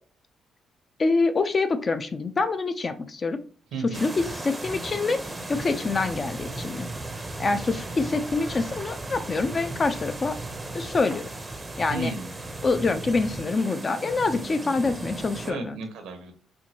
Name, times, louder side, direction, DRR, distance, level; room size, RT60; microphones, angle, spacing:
voice 1, 1.0-3.4 4.0-5.2 5.5-6.9 7.4-10.4 10.7-11.2 11.8-12.1 12.6-15.8, left 3 dB, 35° left, 10 dB, 0.4 m, -26 dB
voice 2, 3.7-4.1 11.9-12.3 15.4-16.3, right 2 dB, 90° right, 5 dB, 0.8 m, -33 dB
sound 1, 3.9-15.5, right 2 dB, 20° right, 0.6 m, -36 dB
4.4 x 2.6 x 2.8 m, 0.42 s
cardioid pair, 90°, 0 cm